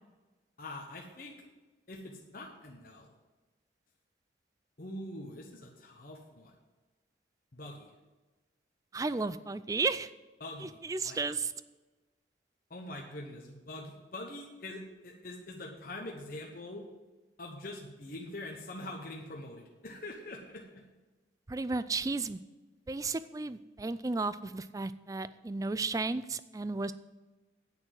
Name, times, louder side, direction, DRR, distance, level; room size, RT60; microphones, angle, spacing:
voice 1, 0.6-1.3 1.9-3.1 4.8-6.5 7.5-7.9 10.4-11.2 12.7-16.9 17.4-20.8, left 1 dB, 50° left, 0 dB, 1.0 m, -44 dB
voice 2, 8.9-10.1 10.6-11.5 21.5-22.4 22.9-26.9, right 3 dB, 20° right, 14 dB, 0.3 m, -33 dB
8.9 x 6.2 x 7.7 m, 1.2 s
head